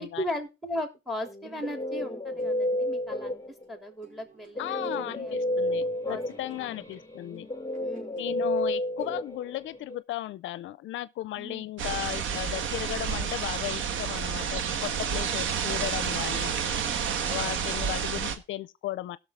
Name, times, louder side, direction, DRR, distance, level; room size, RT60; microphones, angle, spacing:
voice 1, 0.0-3.4 3.7-5.4 5.7-6.2 6.6-7.0 7.8-8.2 11.4-11.6 16.8-17.1, left 1 dB, ahead, 3.1 m, -37 dB
Guitar, 1.3-3.8 4.5-10.0, left 1 dB, 15° left, 1.5 m, -31 dB
sound 1, 2.2-9.9, right 2 dB, 40° right, 4.6 m, -57 dB
voice 2, 4.6-7.5 8.2-16.5 17.2-19.2, left 14 dB, 75° left, 0.5 m, -35 dB
sound 2, 11.8-18.4, right 7 dB, 80° right, 1.3 m, -30 dB
17.0 x 6.3 x 3.6 m
cardioid pair, 90°, 20 cm